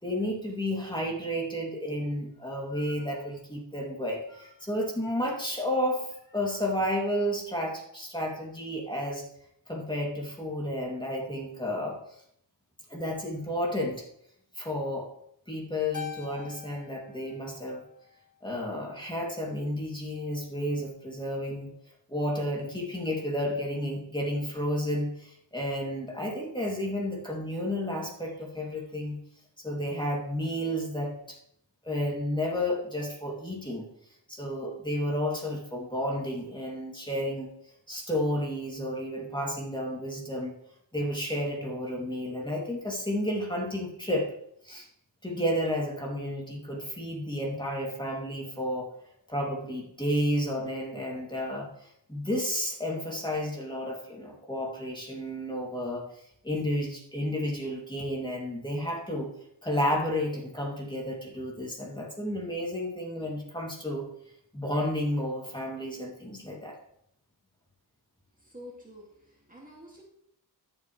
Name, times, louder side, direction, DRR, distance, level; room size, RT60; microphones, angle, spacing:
voice 1, 0.0-9.2 9.7-12.0 12.9-14.0 14.5-15.1 15.5-17.8 18.4-21.7 22.1-29.2 29.6-31.4 31.8-33.8 34.3-37.5 37.9-40.5 40.9-44.3 44.6-44.9 45.2-48.9 49.3-59.3 59.6-64.1 64.5-66.8, equal, 10° left, -3 dB, 3.1 m, -31 dB
Keyboard (musical), 15.9-18.5, left 9 dB, 45° left, 1.4 m, -44 dB
voice 2, 68.4-70.0, equal, 20° right, -3 dB, 2.7 m, -48 dB
12.5 x 8.1 x 3.4 m, 0.73 s
cardioid pair, 65°, 43 cm